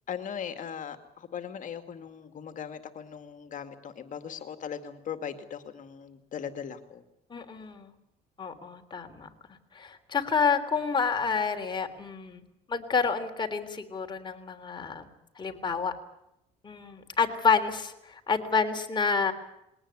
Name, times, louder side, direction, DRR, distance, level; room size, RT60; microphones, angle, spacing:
voice 1, 0.1-7.0, left 8 dB, 50° left, 8 dB, 2.3 m, -39 dB
voice 2, 7.3-7.9 8.4-9.3 9.7-15.1 15.3-15.9 16.6-19.3, left 5 dB, 25° left, 4 dB, 3.4 m, -29 dB
21.5 x 18.5 x 9.8 m, 0.83 s
cardioid pair, 110°, 17 cm